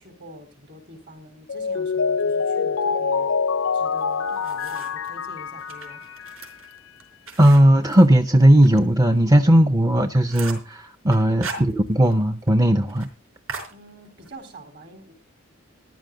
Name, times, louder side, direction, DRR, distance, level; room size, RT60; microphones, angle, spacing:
voice 1, 0.0-3.3 3.7-6.0 9.2-9.6 11.3-11.7 13.7-15.1, equal, 50° right, 3.8 m, -45 dB
Mallet percussion, 1.5-6.5, left 5 dB, 70° left, 0.5 m, -25 dB
sound 1, 4.0-5.1 5.6-8.8 9.2-9.3 9.6-9.7 10.0-10.7 11.1-12.2 12.5-12.6 12.9-13.1 13.5-14.3, right 4 dB, 75° right, 4.5 m, -38 dB
voice 2, 7.4-13.1, right 1 dB, 15° right, 0.5 m, -17 dB
14.5 x 11.5 x 3.8 m
head